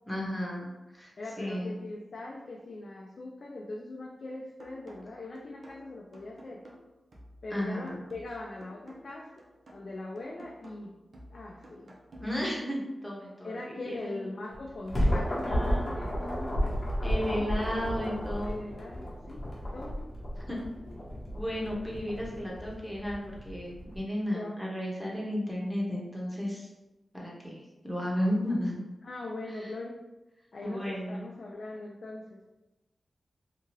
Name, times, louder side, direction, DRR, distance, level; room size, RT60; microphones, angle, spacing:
voice 1, 0.1-1.1 1.4-1.7 7.5-8.0 12.2-14.2 15.4-16.6 17.0-18.6 20.5-20.6 21.3-26.7 27.1-28.8 29.5-29.7 30.6-31.2, equal, ahead, -4 dB, 1.0 m, -34 dB
voice 2, 1.2-6.6 7.4-9.3 9.7-10.9 11.3-12.0 13.4-16.8 17.1-17.5 18.4-20.1 24.3-24.5 29.0-30.0 30.5-32.4, left 2 dB, 65° left, -2 dB, 0.4 m, -41 dB
sound 1, 4.6-12.6, equal, 65° right, 0.6 m, -53 dB
sound 2, 14.5-24.0, equal, 45° left, 1.0 m, -32 dB
2.8 x 2.3 x 3.1 m, 1.0 s
cardioid pair, 55°, 0 cm